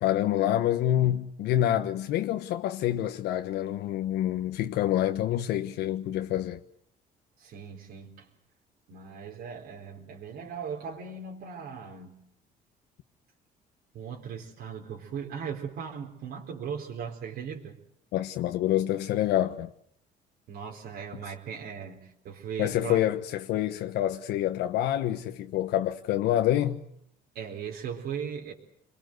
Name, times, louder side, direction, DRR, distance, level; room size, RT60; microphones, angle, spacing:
voice 1, 0.0-6.6 18.1-19.7 22.6-26.8, left 12 dB, 80° left, 1.3 m, -27 dB
voice 2, 7.4-8.3 8.9-12.2 13.9-17.8 20.5-23.0 27.3-28.5, right 7 dB, 70° right, 4.3 m, -38 dB
28.5 x 22.5 x 7.9 m
cardioid pair, 110°, 17 cm